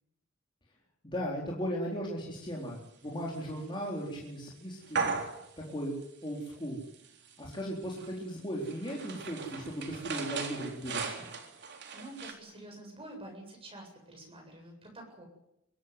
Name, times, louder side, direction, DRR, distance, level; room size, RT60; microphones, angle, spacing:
voice 1, 1.0-5.1 5.7-5.9 6.2-6.8 7.4-11.3, equal, 25° left, -4 dB, 4.1 m, -37 dB
sound 1, 3.3-3.4 4.1-4.2 4.8-5.7 6.0-6.5 6.8-12.3, right 5 dB, 55° right, 3.7 m, -37 dB
voice 2, 11.9-15.2, right 1 dB, 25° right, 2 dB, 8.0 m, -48 dB
23.5 x 16.5 x 9.6 m, 0.82 s
head